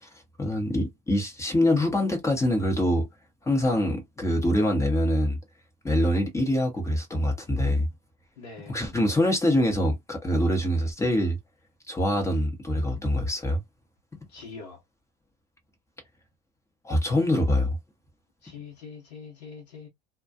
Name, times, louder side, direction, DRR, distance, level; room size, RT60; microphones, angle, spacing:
voice 1, 0.4-3.1 3.4-5.4 5.8-7.9 8.7-11.4 11.9-13.6 16.8-17.8, left 1 dB, 15° left, 0.8 m, -24 dB
voice 2, 8.4-8.8 14.3-14.8 18.4-19.9, left 5 dB, 80° left, 0.9 m, -43 dB
2.4 x 2.2 x 2.4 m
hypercardioid pair, 80°, 21 cm